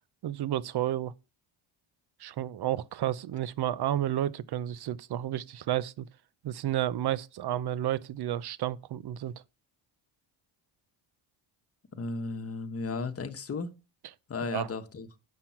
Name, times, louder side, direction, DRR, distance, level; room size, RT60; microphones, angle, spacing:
voice 1, 0.2-1.1 2.2-6.1 6.4-9.3 14.5-14.7, right 12 dB, 55° right, 0.6 m, -31 dB
voice 2, 12.0-13.7 14.3-15.1, left 4 dB, 30° left, 1.2 m, -34 dB
7.6 x 6.0 x 5.8 m
cardioid pair, 110°, 48 cm